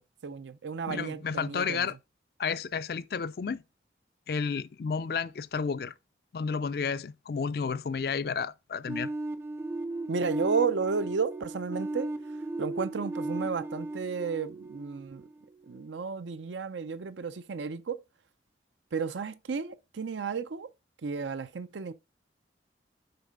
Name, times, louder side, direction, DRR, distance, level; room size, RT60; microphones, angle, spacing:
voice 1, 0.0-1.9 10.1-12.1 12.6-15.2 15.7-18.0 18.9-20.7 21.0-21.9, right 5 dB, 90° right, 0.5 m, -32 dB
voice 2, 0.9-1.9 2.4-3.6 4.3-5.9 6.3-9.1, left 5 dB, 55° left, 0.4 m, -31 dB
sound 1, 8.9-15.6, right 2 dB, 15° right, 0.5 m, -36 dB
6.8 x 4.2 x 3.5 m
head